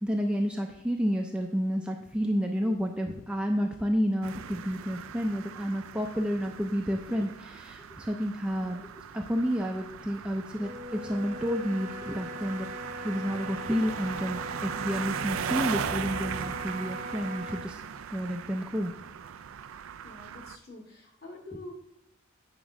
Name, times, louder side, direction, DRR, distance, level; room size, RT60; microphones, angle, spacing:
voice 1, 0.0-12.7 13.0-17.8 18.1-18.9, equal, 5° right, 1 dB, 0.5 m, -30 dB
sound 1, 4.2-20.6, right 7 dB, 85° right, 0.4 m, -38 dB
Wind instrument woodwind instrument, 10.5-17.8, equal, 35° right, 0.8 m, -41 dB
voice 2, 20.0-21.7, left 2 dB, 50° left, -1 dB, 2.2 m, -46 dB
9.1 x 3.8 x 6.1 m, 0.85 s
head